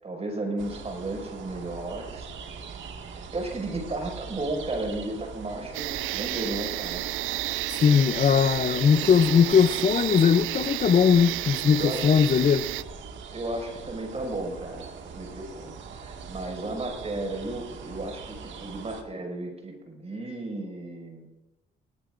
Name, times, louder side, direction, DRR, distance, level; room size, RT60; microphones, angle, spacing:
voice 1, 0.0-2.3 3.1-7.0 11.8-12.1 13.3-21.3, right 2 dB, 30° right, 2 dB, 5.8 m, -34 dB
sound 1, 0.6-19.0, right 5 dB, 70° right, 2.0 m, -42 dB
sound 2, 5.7-12.8, right 17 dB, 90° right, 0.4 m, -31 dB
voice 2, 7.7-12.7, left 7 dB, 40° left, 11 dB, 0.6 m, -20 dB
20.0 x 18.0 x 2.6 m, 0.99 s
cardioid pair, 90°, 20 cm